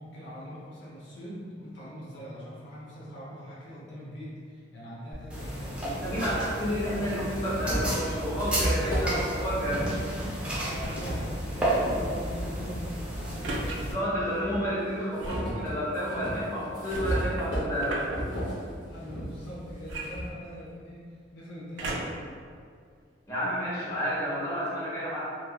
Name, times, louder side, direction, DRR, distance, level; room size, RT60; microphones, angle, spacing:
voice 1, 0.0-6.4 8.4-8.6 10.1-13.8 18.8-22.2, equal, 70° left, -7 dB, 0.6 m, -42 dB
sound 1, 5.1-5.2 6.3-6.4 6.9-12.0 12.5-13.7 14.1-20.3, equal, 85° left, 1.4 m, -34 dB
sound 2, 5.3-13.9, right 1 dB, 5° right, 0.5 m, -32 dB
voice 2, 5.8-10.1 13.9-18.0 23.3-25.2, equal, 15° left, -10 dB, 1.0 m, -30 dB
sound 3, 10.7-11.1 13.4-13.8 15.2-15.5 16.9-18.2 19.9-20.8 21.8-22.3 23.0-23.1, right 2 dB, 70° right, 0.4 m, -36 dB
2.9 x 2.5 x 2.2 m, 2.1 s
head